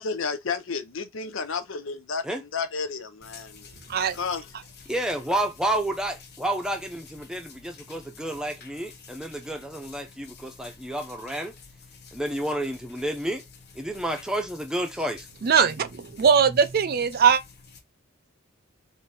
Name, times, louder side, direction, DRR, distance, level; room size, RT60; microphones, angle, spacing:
voice 1, 0.0-2.2 2.5-3.7 4.2-4.4, left 5 dB, 70° left, 0.7 m, -31 dB
sound 1, 3.2-17.8, left 5 dB, 50° left, 1.0 m, -49 dB
voice 2, 4.9-11.5 12.1-13.4 13.7-15.3, right 1 dB, 5° right, 0.7 m, -30 dB
voice 3, 15.4-17.4, right 6 dB, 45° right, 0.4 m, -20 dB
3.7 x 2.7 x 4.0 m
head